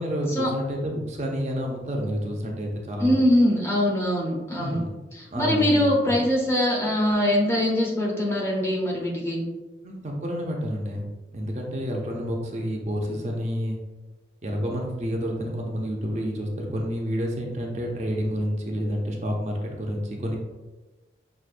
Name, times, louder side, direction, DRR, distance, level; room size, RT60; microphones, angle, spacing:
voice 1, 0.0-3.1 4.6-4.9 5.3-6.2 9.8-11.0 11.3-13.8 14.4-20.4, equal, 40° right, 0 dB, 0.5 m, -29 dB
voice 2, 3.0-4.8 5.1-9.4, left 1 dB, 15° left, -3 dB, 0.7 m, -23 dB
6.0 x 2.5 x 2.5 m, 1.2 s
head